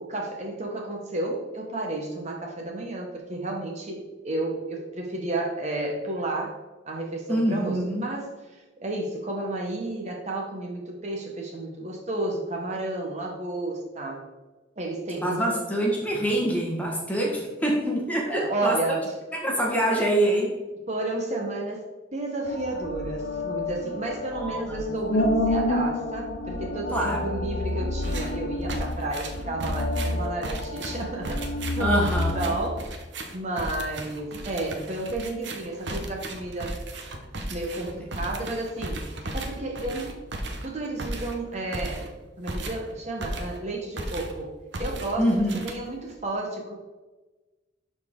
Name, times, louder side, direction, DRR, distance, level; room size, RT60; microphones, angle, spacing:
voice 1, 0.0-6.6 6.9-14.2 14.8-15.6 18.3-19.1 20.9-32.8 33.3-36.7 37.5-40.2 40.6-42.1 42.4-44.5 44.8-46.7, right 2 dB, 35° right, 0 dB, 1.0 m, -32 dB
voice 2, 7.3-8.0 15.2-18.8 19.3-20.5 24.3-24.9 26.9-27.3 31.8-32.5 45.2-45.6, right 1 dB, 10° left, -2 dB, 1.4 m, -25 dB
sound 1, 22.5-32.6, left 1 dB, 55° left, 0.7 m, -29 dB
sound 2, 28.0-28.4 28.7-43.7 44.0-44.4 44.7-46.1, right 1 dB, 65° right, 1.0 m, -36 dB
11.5 x 4.2 x 3.7 m, 1.2 s
head